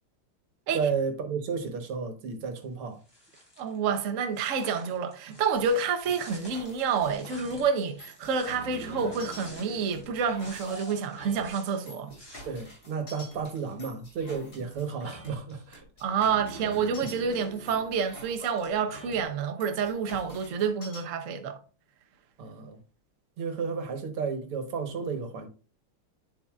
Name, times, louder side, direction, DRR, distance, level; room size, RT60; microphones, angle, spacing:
voice 1, 0.7-3.0 12.5-15.8 22.4-22.8 23.4-25.5, right 5 dB, 85° right, 2.1 m, -32 dB
sound 1, 3.0-3.8 4.3-10.1 10.3-12.4, equal, 10° left, 3.9 m, -51 dB
voice 2, 3.6-12.2 16.0-21.6, right 6 dB, 55° right, 0.9 m, -28 dB
sound 2, 5.5-21.0, left 1 dB, 35° left, 4.3 m, -46 dB
10.5 x 5.4 x 2.4 m
omnidirectional pair, 2.4 m